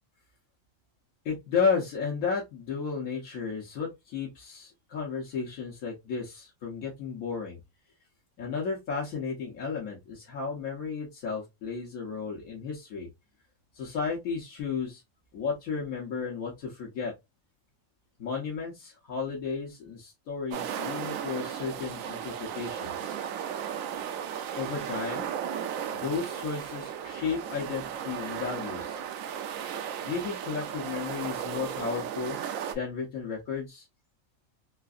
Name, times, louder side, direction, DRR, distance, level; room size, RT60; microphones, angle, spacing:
voice 1, 1.2-7.6 8.4-13.1 13.7-15.0 15.3-17.1 18.2-23.2 24.5-25.3 25.9-29.0 30.0-32.4 32.7-33.8, left 5 dB, 80° left, 1.4 m, -33 dB
sound 1, 20.5-32.7, right 8 dB, 75° right, 1.0 m, -35 dB
3.8 x 2.4 x 2.5 m
omnidirectional pair, 1.4 m